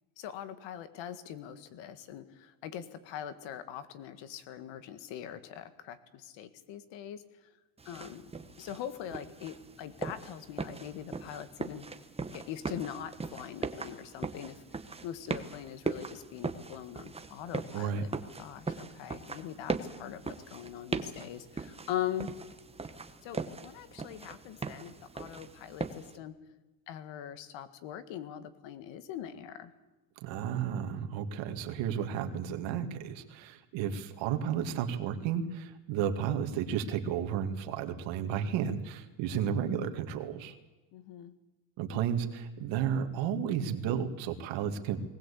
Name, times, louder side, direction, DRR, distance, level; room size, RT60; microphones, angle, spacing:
voice 1, 0.2-7.5 7.9-8.3 8.6-11.9 12.3-14.6 15.0-18.1 18.4-22.3 23.2-26.4 26.9-29.7 39.3-39.7 40.9-41.3, left 10 dB, 65° left, 11 dB, 1.9 m, -42 dB
sound 1, 7.8-26.2, right 4 dB, 10° right, 1.2 m, -40 dB
voice 2, 17.7-18.0 30.2-40.6 41.8-45.0, right 8 dB, 65° right, 6 dB, 2.2 m, -32 dB
20.0 x 19.0 x 8.4 m, 1.1 s
cardioid pair, 125°, 47 cm